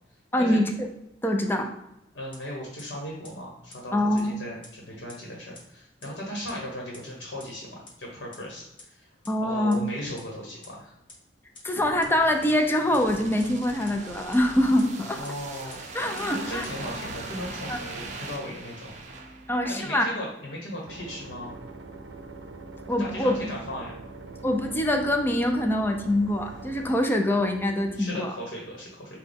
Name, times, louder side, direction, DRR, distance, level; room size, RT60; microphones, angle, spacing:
voice 1, 0.3-0.9 1.2-1.7 3.9-4.4 9.3-9.8 11.6-15.2 15.9-16.6 17.7-17.8 19.5-20.1 22.9-23.5 24.4-28.3, left 1 dB, 10° left, 4 dB, 0.4 m, -24 dB
voice 2, 2.1-9.1 9.4-10.9 15.1-16.0 16.3-18.9 19.7-21.6 23.0-24.0 27.9-29.2, left 1 dB, 70° left, -2 dB, 1.1 m, -37 dB
sound 1, 2.3-2.4 2.8-2.9 3.2-3.3 3.7-3.8 4.2-4.3 4.6-4.7 5.1-5.2 5.5-5.6 6.0-6.1 6.5-6.6 6.9-7.0 7.4-7.5 7.8-7.9 8.3-8.4 8.8-8.9 9.2-9.3 9.7-9.8 10.2-10.3 10.6-10.7 11.1-11.2 11.5-11.6 12.0-12.1 12.5-12.6 12.9-13.0 13.4-13.5 13.9-14.0 14.3-14.4 14.8-14.9 15.2-15.3 15.7-15.8 16.2-16.3 16.6-16.7, left 3 dB, 30° left, 1.1 m, -46 dB
sound 2, 11.8-20.1 20.4-20.6, right 3 dB, 40° right, 0.6 m, -40 dB
sound 3, 20.8-28.2, right 3 dB, 85° right, 0.5 m, -43 dB
6.1 x 2.2 x 3.5 m, 0.85 s
head